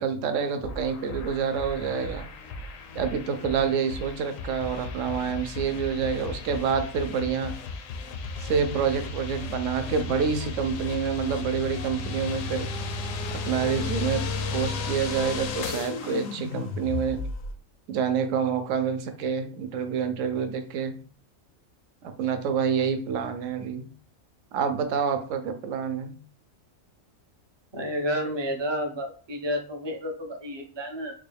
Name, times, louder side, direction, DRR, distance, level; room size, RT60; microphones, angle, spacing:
voice 1, 0.0-2.3 2.9-7.5 8.4-12.7 13.5-14.2 14.5-17.2 17.9-20.9 22.0-23.8 24.5-26.1, right 6 dB, 70° right, 8 dB, 0.9 m, -27 dB
sound 1, 0.6-17.5, left 3 dB, 80° left, 0.9 m, -34 dB
voice 2, 27.7-31.1, equal, 45° right, 3 dB, 0.3 m, -30 dB
3.8 x 2.3 x 3.2 m, 0.41 s
omnidirectional pair, 1.4 m